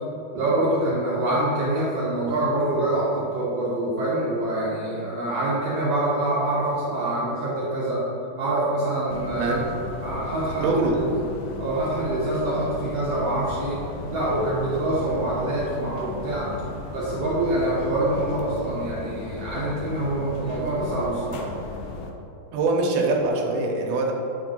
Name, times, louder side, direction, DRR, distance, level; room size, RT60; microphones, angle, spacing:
voice 1, 0.3-8.0 8.4-9.5 10.0-10.7 11.0-11.1 11.6-13.8 14.1-16.5 16.9-21.5, right 1 dB, 70° right, -8 dB, 1.5 m, -25 dB
sound 1, 9.1-22.1, left 3 dB, 80° left, 2.0 m, -36 dB
voice 2, 9.3-9.7 10.6-11.0 22.5-24.1, right 3 dB, 85° right, 1 dB, 2.8 m, -23 dB
9.0 x 3.2 x 5.3 m, 2.9 s
omnidirectional pair, 4.5 m